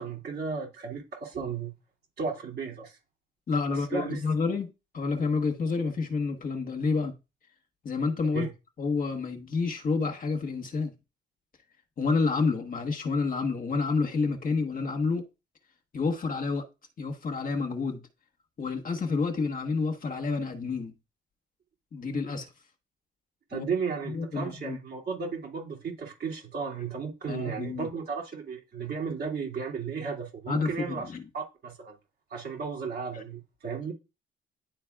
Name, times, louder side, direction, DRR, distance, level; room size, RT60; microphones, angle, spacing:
voice 1, 0.0-1.7 2.2-3.0 3.7-4.2 8.3-8.5 23.5-31.9 32.3-33.9, right 5 dB, 55° right, 2.6 m, -34 dB
voice 2, 3.5-7.1 7.8-8.5 8.8-10.9 12.0-15.3 15.9-16.6 17.0-18.0 18.6-20.9 21.9-22.5 23.5-23.7 24.0-24.8 27.3-27.9 30.5-31.2, left 4 dB, 45° left, 1.2 m, -29 dB
10.5 x 4.0 x 2.4 m
cardioid pair, 90°, 20 cm